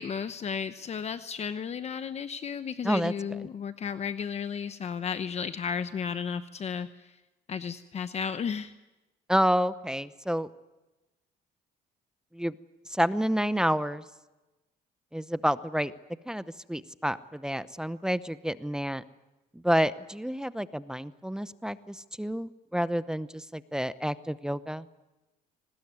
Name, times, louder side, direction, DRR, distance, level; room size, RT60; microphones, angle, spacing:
voice 1, 0.0-7.1 7.5-8.7, left 6 dB, 40° left, 11 dB, 0.9 m, -33 dB
voice 2, 9.3-10.5 12.3-12.5 12.9-14.0 15.1-15.9 16.3-16.4 16.7-19.0 19.5-24.9, equal, 5° right, 14 dB, 0.8 m, -29 dB
24.5 x 20.0 x 9.6 m, 1.1 s
cardioid pair, 110°, 17 cm